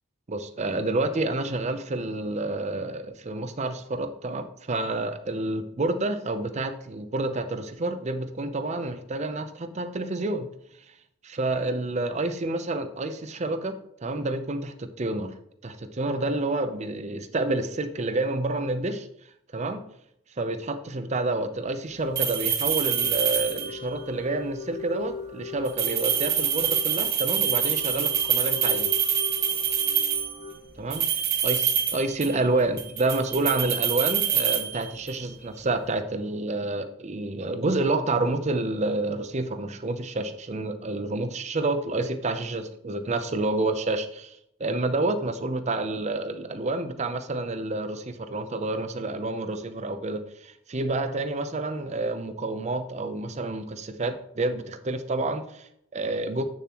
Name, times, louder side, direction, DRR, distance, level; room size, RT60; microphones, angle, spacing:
voice 1, 0.3-10.5 11.2-15.3 15.6-19.1 19.5-19.8 20.4-28.9 30.8-31.0 31.4-56.4, right 2 dB, 35° right, 9 dB, 0.6 m, -29 dB
sound 1, 22.2-23.9 25.7-30.4 30.9-32.5 32.8-35.2, right 9 dB, 50° right, 1.1 m, -26 dB
sound 2, 22.7-30.5, left 5 dB, 50° left, 1.8 m, -40 dB
7.8 x 6.8 x 3.0 m, 0.75 s
head